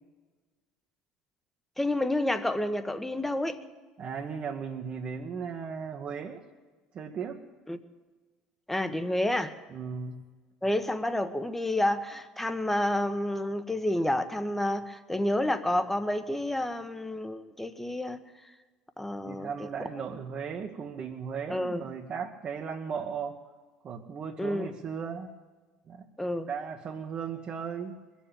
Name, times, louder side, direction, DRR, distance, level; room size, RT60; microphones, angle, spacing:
voice 1, 1.8-3.6 7.7-7.8 8.7-9.5 10.6-18.2 19.0-19.7 21.5-21.8 24.4-24.7 26.2-26.5, left 1 dB, 10° left, 10 dB, 1.3 m, -29 dB
voice 2, 4.0-6.4 6.9-7.4 9.7-10.2 19.2-23.4 23.8-25.3 25.8-26.1 26.5-28.0, right 6 dB, 45° right, 0 dB, 1.3 m, -36 dB
22.0 x 7.4 x 9.1 m, 1.3 s
hypercardioid pair, 70°, 3 cm